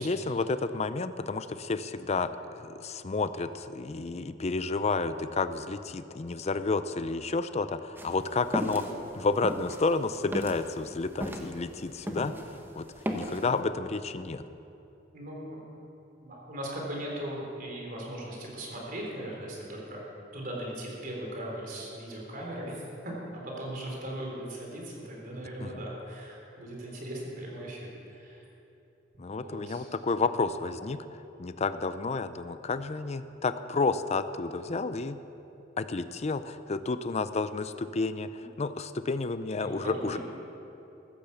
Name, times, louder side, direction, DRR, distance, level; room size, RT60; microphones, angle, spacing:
voice 1, 0.0-2.3 2.6-8.8 9.2-12.4 12.8-12.9 13.1-14.5 25.6-25.7 29.2-31.0 31.4-35.2 35.8-40.2, left 3 dB, 35° left, 11 dB, 0.5 m, -30 dB
sound 1, 8.0-12.6 12.8-13.5, equal, 10° right, 1.2 m, -35 dB
voice 2, 8.7-9.0 15.1-15.6 16.2-20.0 20.3-28.4 29.3-29.9 39.6-40.2, right 1 dB, 50° right, -2 dB, 3.9 m, -39 dB
15.5 x 12.0 x 7.0 m, 2.9 s
head